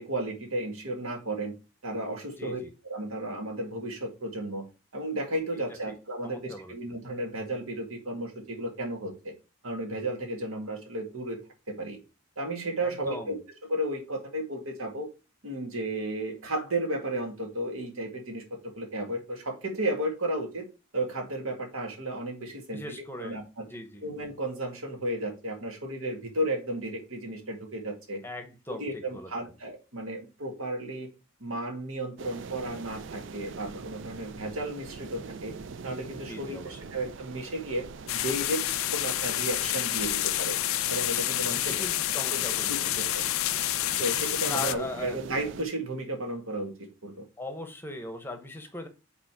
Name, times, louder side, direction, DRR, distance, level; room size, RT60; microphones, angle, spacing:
voice 1, 0.0-1.6 1.8-4.7 4.9-9.3 9.6-11.4 11.7-12.0 12.4-13.4 13.7-15.1 15.4-20.7 20.9-23.7 24.0-28.2 28.7-31.1 31.4-35.5 35.8-37.8 38.1-40.6 40.9-41.9 42.1-42.4 42.7-43.2 44.0-47.2, right 1 dB, 80° right, 2.0 m, -33 dB
voice 2, 2.4-2.7 5.5-5.6 6.2-6.7 12.8-13.4 22.7-24.1 28.2-29.3 36.3-36.9 41.4-43.0 44.5-45.2 47.4-48.9, left 1 dB, 10° left, 0.9 m, -39 dB
sound 1, 32.2-45.6, right 5 dB, 60° right, 0.4 m, -43 dB
sound 2, 38.1-44.7, left 15 dB, 75° left, 0.4 m, -29 dB
5.1 x 4.2 x 5.8 m
head